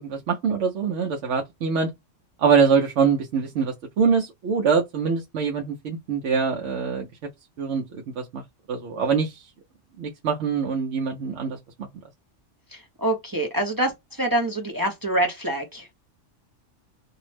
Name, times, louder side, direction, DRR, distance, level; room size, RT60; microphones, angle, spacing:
voice 1, 0.0-1.9 2.4-7.1 7.6-7.8 8.2-8.4 8.7-9.3 10.0-11.6, right 6 dB, 70° right, 0.9 m, -23 dB
voice 2, 12.7-15.9, right 1 dB, 30° right, 0.4 m, -26 dB
2.7 x 2.0 x 3.1 m
omnidirectional pair, 1.3 m